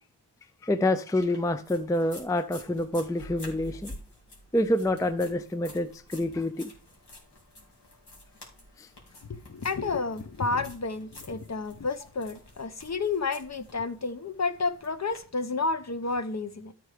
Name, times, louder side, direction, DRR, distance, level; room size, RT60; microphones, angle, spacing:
voice 1, 0.6-3.9 4.5-6.7 8.8-8.9, left 1 dB, 10° left, 0.4 m, -27 dB
sound 1, 1.2-15.2, left 1 dB, 65° left, 3.4 m, -50 dB
voice 2, 9.3-16.7, left 4 dB, 40° left, 0.8 m, -31 dB
12.5 x 4.6 x 4.9 m
wide cardioid pair, 125°, 42 cm